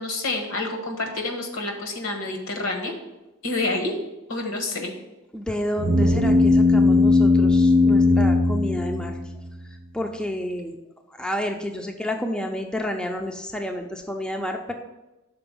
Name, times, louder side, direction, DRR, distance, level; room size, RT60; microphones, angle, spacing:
voice 1, 0.0-2.9 3.4-4.0 4.3-4.9, left 2 dB, 75° left, 3 dB, 1.2 m, -28 dB
voice 2, 5.3-9.2 9.9-10.8 11.2-14.7, left 1 dB, 5° left, 3 dB, 0.4 m, -30 dB
sound 1, 5.8-9.5, left 2 dB, 35° right, 0.7 m, -18 dB
5.9 x 4.3 x 5.4 m, 1.0 s
head